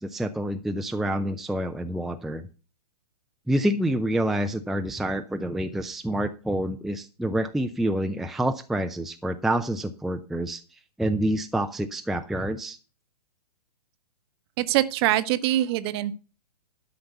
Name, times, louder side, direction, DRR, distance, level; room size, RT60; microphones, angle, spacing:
voice 1, 0.0-2.5 3.5-10.6 11.0-12.8, right 1 dB, ahead, 6 dB, 0.6 m, -27 dB
voice 2, 14.6-16.2, right 14 dB, 40° right, 14 dB, 1.0 m, -24 dB
12.0 x 5.8 x 6.6 m, 0.34 s
figure-of-eight pair, 120°, 21 cm